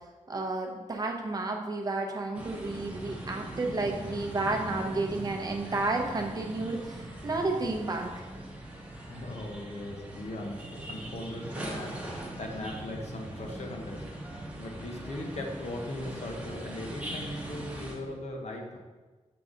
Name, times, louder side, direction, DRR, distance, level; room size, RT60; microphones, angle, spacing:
voice 1, 0.3-8.1, right 2 dB, 30° right, 2 dB, 0.7 m, -31 dB
sound 1, 2.3-17.9, right 1 dB, 10° right, 1.0 m, -41 dB
voice 2, 9.1-18.8, left 1 dB, 60° left, 1 dB, 0.9 m, -39 dB
6.8 x 3.8 x 3.8 m, 1.3 s
wide cardioid pair, 175°, 12 cm